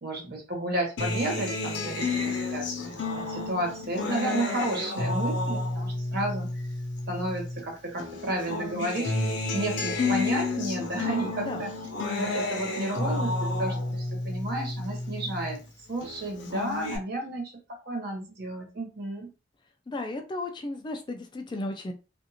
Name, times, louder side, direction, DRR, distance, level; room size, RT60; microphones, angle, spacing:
voice 1, 0.0-3.0 3.3-6.5 7.1-11.7 12.2-15.6 15.9-19.3, right 1 dB, 55° right, 0 dB, 1.1 m, -32 dB
Acoustic guitar, 1.0-7.6 8.0-15.6 16.0-17.0, left 3 dB, 75° left, 0.7 m, -31 dB
voice 2, 19.9-21.9, left 2 dB, 25° left, 5 dB, 0.3 m, -34 dB
2.5 x 2.4 x 2.8 m, 0.31 s
head